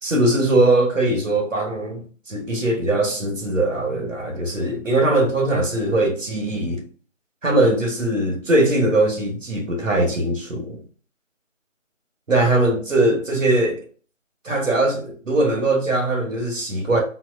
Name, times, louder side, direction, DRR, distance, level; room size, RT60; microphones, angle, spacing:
voice 1, 0.0-6.8 7.4-10.8 12.3-13.8 14.4-17.0, right 2 dB, 80° right, 1.3 m, -21 dB
4.0 x 2.1 x 2.6 m
figure-of-eight pair, 170°, 38 cm